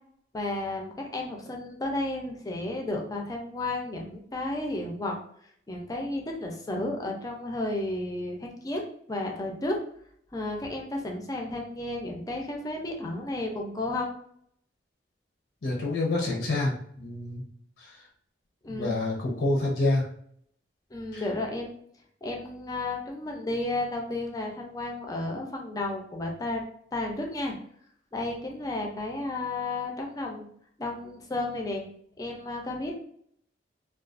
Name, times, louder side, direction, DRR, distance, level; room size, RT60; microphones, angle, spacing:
voice 1, 0.3-5.2 5.7-8.8 9.1-9.8 10.3-14.1 18.6-19.0 20.9-21.7 22.2-26.6 26.9-27.6 28.1-30.5 30.8-31.9 32.2-32.9, left 2 dB, 20° left, 1 dB, 0.4 m, -32 dB
voice 2, 15.6-17.5 17.8-17.9 18.7-20.1 21.1-21.2, left 2 dB, 75° left, -1 dB, 0.6 m, -27 dB
2.3 x 2.3 x 2.4 m, 0.64 s
head